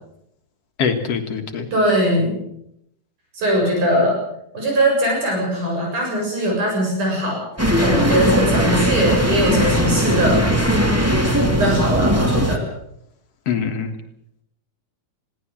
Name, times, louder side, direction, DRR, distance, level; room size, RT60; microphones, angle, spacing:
voice 1, 0.8-1.7 13.5-13.9, left 6 dB, 55° left, 5 dB, 2.5 m, -23 dB
voice 2, 1.7-2.4 3.3-4.2 4.5-7.4 7.8-10.4 11.4-12.6, equal, 75° right, 0 dB, 8.6 m, -20 dB
sound 1, 7.6-12.6, equal, 5° right, 1.6 m, -19 dB
21.0 x 18.0 x 7.5 m, 0.76 s
omnidirectional pair, 3.6 m